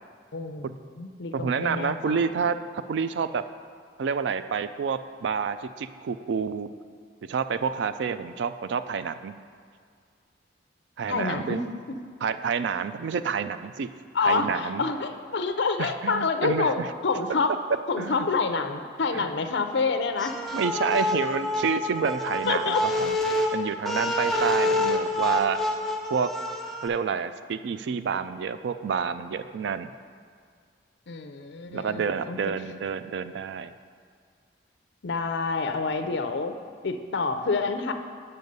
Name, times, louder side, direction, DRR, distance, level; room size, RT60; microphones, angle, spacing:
voice 1, 0.3-2.2 11.1-12.0 12.8-12.9 14.1-17.5 17.9-20.4 22.5-22.8 31.1-32.4 35.0-36.5 36.8-37.9, left 4 dB, 65° left, 7 dB, 0.5 m, -28 dB
voice 2, 1.3-3.4 4.0-6.7 7.3-9.4 11.0-11.6 12.2-13.9 14.2-14.8 15.8-16.9 18.0-18.3 19.1-19.3 20.5-23.1 23.5-25.6 26.1-26.3 26.8-29.9 31.7-33.7, right 6 dB, 65° right, 12 dB, 0.3 m, -29 dB
sound 1, 20.2-26.9, left 1 dB, ahead, 0.5 m, -27 dB
7.9 x 5.5 x 5.3 m, 2.1 s
head